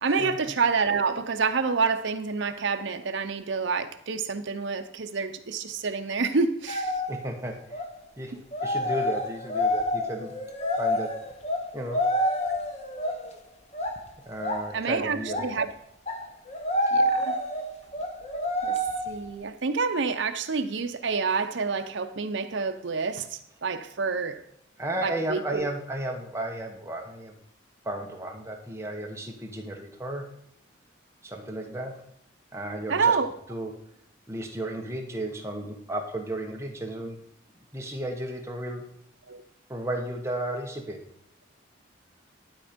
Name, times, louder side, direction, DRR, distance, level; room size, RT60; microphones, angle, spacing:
voice 1, 0.0-7.0 8.3-8.4 14.7-15.7 16.9-17.4 18.6-18.8 19.1-24.4 25.0-25.7 32.9-33.3 39.3-39.4, right 5 dB, 70° right, 0.7 m, -28 dB
sound 1, 6.7-7.2 7.7-7.9 8.5-13.3 13.7-14.0 14.4-14.7 15.2-15.6 16.1-19.3, left 1 dB, 35° left, 1.0 m, -28 dB
voice 2, 7.1-7.8 8.2-8.3 8.6-10.3 10.8-11.1 11.7-12.0 14.3-15.5 24.8-27.3 27.8-30.3 31.2-32.0 32.5-33.1 33.5-33.7 34.3-37.2 37.7-38.8 39.7-41.0, right 1 dB, 15° right, 1.0 m, -34 dB
11.5 x 4.4 x 5.1 m
head